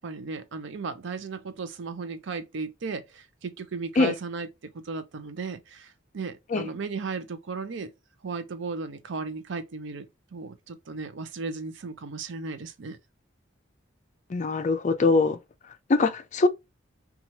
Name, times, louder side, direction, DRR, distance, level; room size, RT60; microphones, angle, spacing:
voice 1, 0.0-4.5 4.8-7.9 8.2-13.0, right 4 dB, 65° right, 0.5 m, -35 dB
voice 2, 14.3-15.4 15.9-16.5, left 3 dB, 40° left, 0.4 m, -22 dB
3.0 x 2.3 x 2.7 m
head